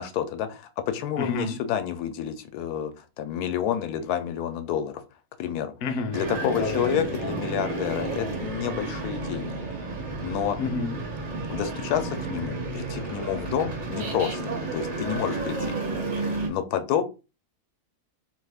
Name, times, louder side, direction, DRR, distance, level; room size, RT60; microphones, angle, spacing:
voice 1, 0.0-5.0 5.4-5.7 6.1-9.5 10.2-10.6 11.5-17.1, left 9 dB, 80° left, 1.1 m, -29 dB
voice 2, 1.2-1.6 5.8-6.2 6.5-6.8 10.6-11.0, left 4 dB, 65° left, 0.8 m, -29 dB
sound 1, 6.1-16.5, right 3 dB, 50° right, 0.6 m, -31 dB
2.9 x 2.3 x 3.3 m
omnidirectional pair, 1.6 m